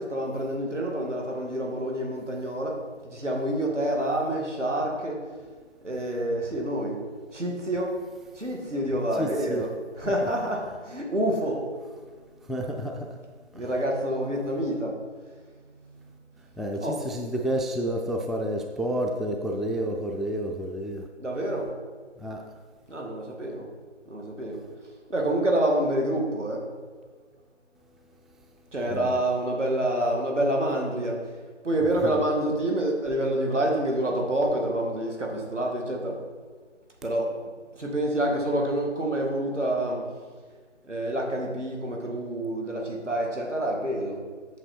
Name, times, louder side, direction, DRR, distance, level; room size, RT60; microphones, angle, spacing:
voice 1, 0.0-5.2 5.8-7.0 7.3-8.0 8.3-9.7 10.0-11.7 13.5-15.0 16.8-17.0 21.2-21.7 22.9-23.7 24.1-24.6 25.1-26.6 28.7-31.2 31.6-36.2 37.0-37.3 37.7-40.1 40.8-44.2, right 1 dB, 75° right, 0 dB, 2.4 m, -27 dB
voice 2, 9.2-9.6 10.0-10.1 12.4-13.2 13.6-13.7 16.6-21.0 22.2-22.4 28.9-29.2 32.0-32.2, equal, ahead, 1 dB, 0.4 m, -30 dB
8.6 x 6.6 x 4.5 m, 1.5 s
figure-of-eight pair, 175°, 36 cm